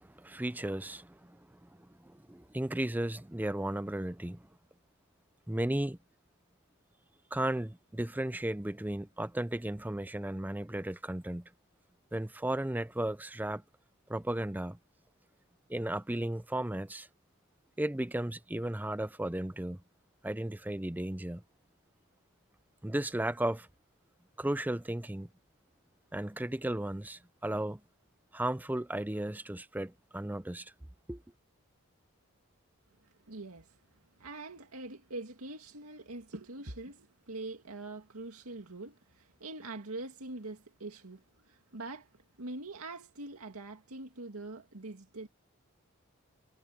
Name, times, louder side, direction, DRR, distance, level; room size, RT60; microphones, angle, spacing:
voice 1, 0.0-1.4 1.6-1.7 2.0-4.4 5.5-6.0 7.3-11.4 12.1-13.6 14.1-14.8 15.7-17.1 17.8-19.8 20.2-21.4 22.8-23.7 24.4-25.3 26.1-27.8 28.3-30.7 31.1-31.2, right 1 dB, 10° right, 0.5 m, -35 dB
voice 2, 33.3-33.8 34.2-42.1 42.4-45.3, right 2 dB, 90° right, 2.2 m, -43 dB
head